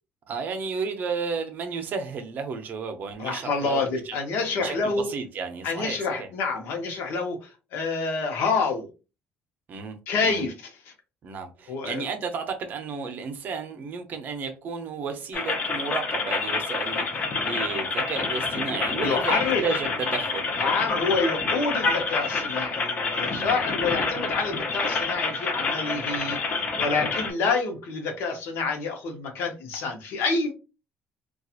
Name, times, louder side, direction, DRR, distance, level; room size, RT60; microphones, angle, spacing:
voice 1, 0.3-4.2 4.6-6.3 9.7-10.5 11.2-20.5 23.3-23.6, right 5 dB, 45° right, 0.6 m, -33 dB
voice 2, 3.2-5.1 5.6-8.9 10.1-10.7 11.7-12.0 19.0-19.6 20.6-26.4 26.8-30.5, left 4 dB, 70° left, 0.8 m, -27 dB
sound 1, 15.3-27.3, left 4 dB, 35° left, 0.6 m, -28 dB
2.8 x 2.3 x 2.4 m
cardioid pair, 140°, 4 cm